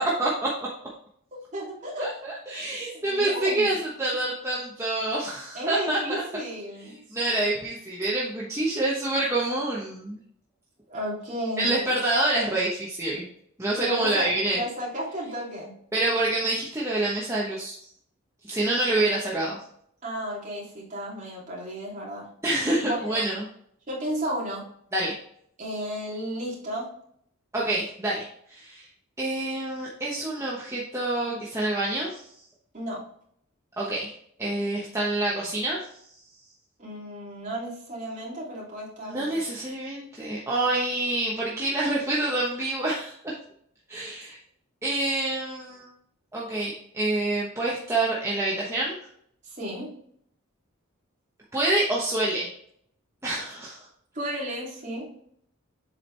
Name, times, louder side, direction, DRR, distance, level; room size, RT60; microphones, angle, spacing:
voice 1, 0.2-0.5 2.0-6.2 7.1-10.2 11.6-13.2 13.6-14.6 15.9-17.8 18.5-19.6 22.4-23.5 24.9-25.1 27.5-28.9 29.2-32.2 33.8-34.1 34.4-35.8 39.1-43.3 43.9-44.4 44.8-45.9 46.3-48.9 51.5-52.5 53.2-53.8, right 2 dB, 15° right, -6 dB, 1.1 m, -27 dB
voice 2, 1.3-2.1 2.9-3.8 5.5-7.0 10.9-11.8 13.8-14.2 14.5-15.7 20.0-22.3 22.8-23.2 23.9-24.6 25.6-26.9 32.7-33.0 36.8-39.3 49.4-49.9 54.1-55.1, equal, 35° right, -5 dB, 3.0 m, -33 dB
7.5 x 4.9 x 3.4 m, 0.66 s
head